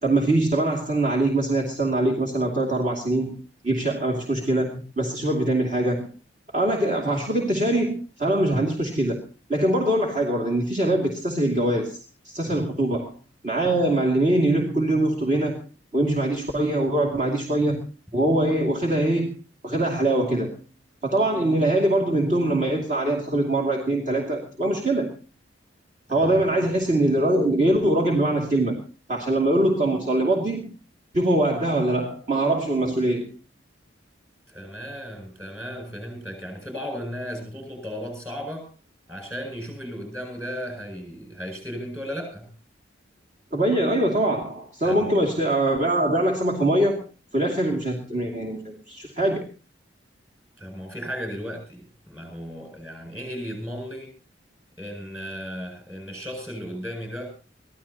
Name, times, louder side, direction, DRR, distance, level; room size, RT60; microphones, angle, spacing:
voice 1, 0.0-3.4 3.6-6.1 6.5-9.2 9.5-12.0 12.2-13.1 13.4-15.6 15.9-17.8 18.1-19.3 19.6-20.5 21.0-25.1 26.1-28.8 29.1-30.7 31.1-33.3 43.5-47.0 47.3-49.5, right 1 dB, 40° right, -1 dB, 2.5 m, -23 dB
voice 2, 34.5-38.7 39.1-42.5 44.8-45.1 50.6-54.1 54.8-57.3, equal, 15° right, 4 dB, 7.6 m, -35 dB
23.5 x 15.5 x 2.9 m, 0.34 s
head